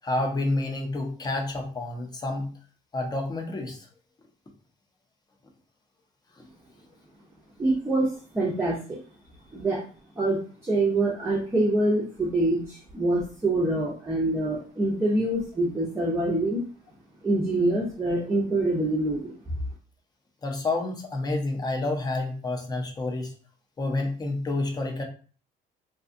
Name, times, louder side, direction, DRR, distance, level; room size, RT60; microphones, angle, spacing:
voice 1, 0.0-2.5 2.9-3.8 20.4-23.3 23.8-25.0, left 2 dB, 25° left, 2 dB, 0.7 m, -29 dB
voice 2, 7.6-9.0 9.5-9.8 10.2-16.6 17.2-19.3, right 2 dB, 15° right, -5 dB, 0.6 m, -25 dB
2.6 x 2.3 x 2.5 m, 0.40 s
cardioid pair, 110°, 17 cm